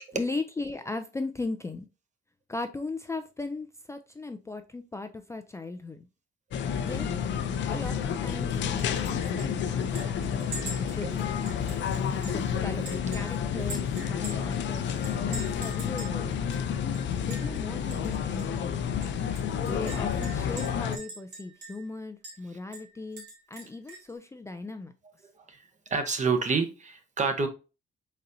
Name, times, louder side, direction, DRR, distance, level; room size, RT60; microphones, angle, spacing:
voice 1, 0.1-1.9 2.5-6.1 6.8-7.1 7.7-11.3 12.2-14.9 15.3-16.4 17.2-18.9 19.5-24.9, left 3 dB, 15° left, 7 dB, 0.4 m, -38 dB
sound 1, 6.5-21.0, left 8 dB, 65° left, 0.5 m, -30 dB
Chink clink, 8.8-9.1 9.4-9.5 10.0-12.5 12.9-14.6 15.0-16.2 16.5-16.6 16.9-17.6 17.9-18.1 18.4-18.5 19.0-21.9 22.2-22.4 22.7-24.1, right 2 dB, 60° right, 1.9 m, -43 dB
voice 2, 11.6-12.3 12.7-12.8 13.6-13.8 25.5-27.5, right 4 dB, 35° right, 7 dB, 0.9 m, -30 dB
4.1 x 4.0 x 2.6 m, 0.31 s
cardioid pair, 90°, 20 cm